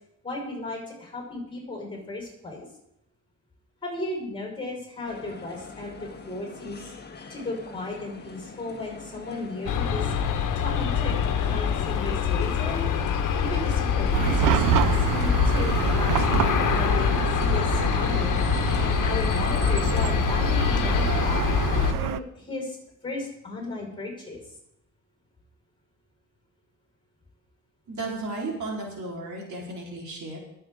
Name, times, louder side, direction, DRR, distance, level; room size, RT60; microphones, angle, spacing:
voice 1, 0.2-2.7 3.8-6.8 7.3-10.1 10.6-12.8 13.4-14.6 15.0-18.4 18.8-21.5 21.9-22.8 23.0-24.4, left 2 dB, 15° left, -1 dB, 5.2 m, -35 dB
sound 1, 5.0-20.3, left 4 dB, 30° left, 1.5 m, -43 dB
Aircraft, 9.7-21.9, left 7 dB, 70° left, 1.3 m, -24 dB
Chatter / Car passing by / Traffic noise roadway noise, 14.1-22.2, right 13 dB, 80° right, 0.6 m, -27 dB
voice 2, 27.9-30.4, right 2 dB, 60° right, -3 dB, 4.1 m, -34 dB
22.5 x 7.9 x 3.8 m, 0.79 s
cardioid pair, 125°, 32 cm